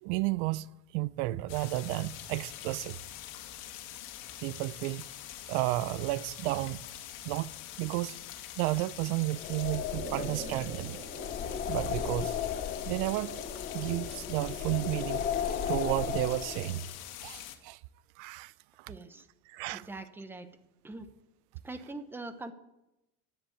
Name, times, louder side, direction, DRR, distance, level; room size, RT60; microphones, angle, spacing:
voice 1, 0.0-3.0 4.4-5.1 5.5-6.9 7.2-8.2 8.6-11.0 11.2-11.3 11.7-12.4 12.9-13.4 13.7-16.9 17.2-17.8 18.2-18.5 18.8-18.9 19.5-19.9, right 18 dB, 85° right, 0.5 m, -32 dB
sound 1, 1.5-17.6, left 12 dB, 80° left, 2.1 m, -45 dB
sound 2, 9.3-16.9, left 8 dB, 30° left, 0.7 m, -35 dB
sound 3, 9.9-13.9, right 3 dB, 35° right, 2.2 m, -46 dB
voice 2, 18.9-19.3 19.7-20.5 20.8-21.1 21.6-22.5, right 2 dB, 5° right, 0.8 m, -42 dB
10.0 x 10.0 x 8.5 m
cardioid pair, 150°, 33 cm